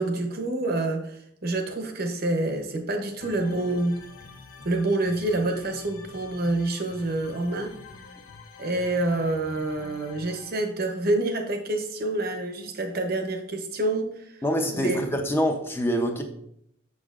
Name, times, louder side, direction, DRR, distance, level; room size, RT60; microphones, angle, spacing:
voice 1, 0.0-4.0 4.6-7.7 8.6-14.4 14.7-15.0, right 2 dB, 50° right, 5 dB, 0.8 m, -27 dB
sound 1, 3.2-10.6, left 4 dB, 85° left, 0.7 m, -47 dB
voice 2, 14.4-16.2, equal, 10° left, 4 dB, 0.6 m, -25 dB
6.5 x 6.0 x 2.4 m, 0.73 s
head